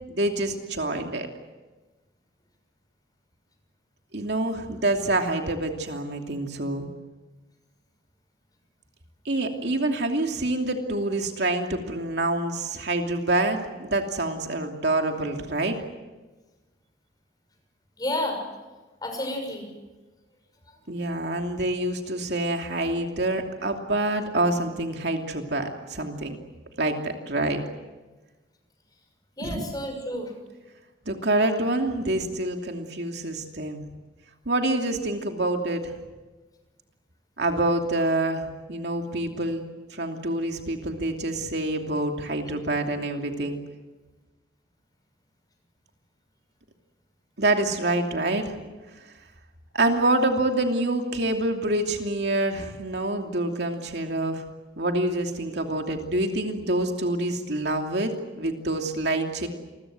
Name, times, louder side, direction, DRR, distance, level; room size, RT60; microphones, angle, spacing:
voice 1, 0.1-1.3 4.1-6.9 9.2-15.8 20.9-26.4 26.8-27.6 29.4-29.6 31.1-33.8 34.4-35.9 37.4-39.6 39.9-43.6 47.4-48.5 49.7-54.4 54.8-59.5, right 2 dB, 65° right, 3 dB, 2.8 m, -26 dB
voice 2, 18.0-18.4 19.0-19.7 29.4-30.3, left 1 dB, 20° left, 4 dB, 6.3 m, -30 dB
28.0 x 22.0 x 7.8 m, 1.2 s
head